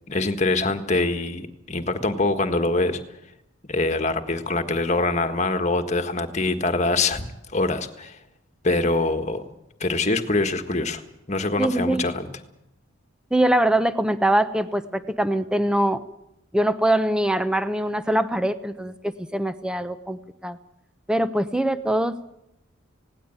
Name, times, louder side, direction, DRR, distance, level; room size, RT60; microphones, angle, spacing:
voice 1, 0.1-3.0 3.7-8.2 8.6-9.4 9.8-11.0 11.3-12.3, left 2 dB, 30° left, 8 dB, 1.6 m, -24 dB
voice 2, 11.6-12.0 13.3-16.0 16.5-20.6 21.1-22.1, right 1 dB, 5° right, 11 dB, 0.8 m, -23 dB
18.5 x 17.5 x 9.0 m, 0.82 s
head